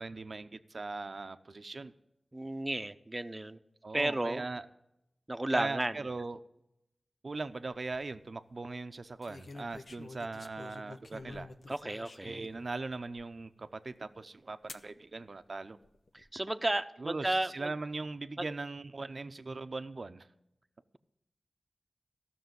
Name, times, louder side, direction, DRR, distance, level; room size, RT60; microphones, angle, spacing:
voice 1, 0.0-1.9 3.8-4.7 5.5-6.4 7.2-11.5 12.2-15.8 17.0-20.3, right 3 dB, 65° right, 11 dB, 0.7 m, -40 dB
voice 2, 2.3-3.6 3.9-4.5 5.3-6.1 11.7-12.4 16.1-17.7 18.4-18.5, right 1 dB, 30° right, 12 dB, 0.7 m, -33 dB
sound 1, 7.5-8.0 9.2-12.6 13.2-13.3 14.7-14.9 15.8-16.3, left 3 dB, 70° left, 0.7 m, -49 dB
14.0 x 6.2 x 7.9 m, 0.84 s
cardioid pair, 45°, 0 cm